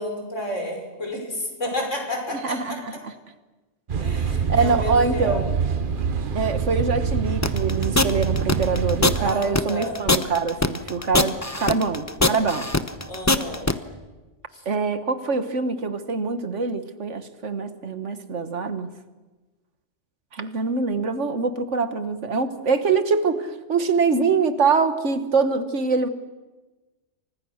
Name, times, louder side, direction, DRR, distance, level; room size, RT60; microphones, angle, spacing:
voice 1, 0.0-2.8 4.0-5.5 9.2-10.1 13.1-13.7 14.5-14.6, left 1 dB, 85° left, 2 dB, 6.1 m, -31 dB
voice 2, 2.3-3.1 4.5-5.5 6.3-12.7 14.6-18.9 20.3-26.1, right 4 dB, 75° right, 10 dB, 1.8 m, -24 dB
sound 1, 3.9-9.3, right 6 dB, 45° right, 1.1 m, -25 dB
sound 2, 7.4-13.7, left 2 dB, 15° left, 0.9 m, -21 dB
30.0 x 25.0 x 6.5 m, 1.2 s
omnidirectional pair, 1.2 m